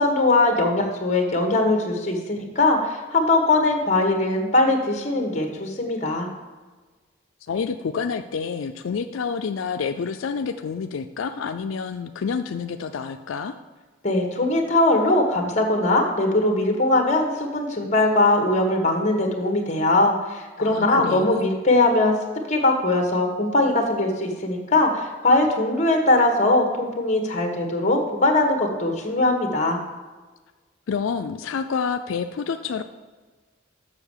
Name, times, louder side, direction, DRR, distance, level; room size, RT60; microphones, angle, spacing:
voice 1, 0.0-6.3 14.0-22.2 22.5-29.8, left 2 dB, 35° left, 4 dB, 1.4 m, -21 dB
voice 2, 7.5-13.6 20.6-21.5 30.9-32.8, left 5 dB, 85° left, 8 dB, 0.4 m, -28 dB
6.9 x 6.3 x 7.2 m, 1.3 s
head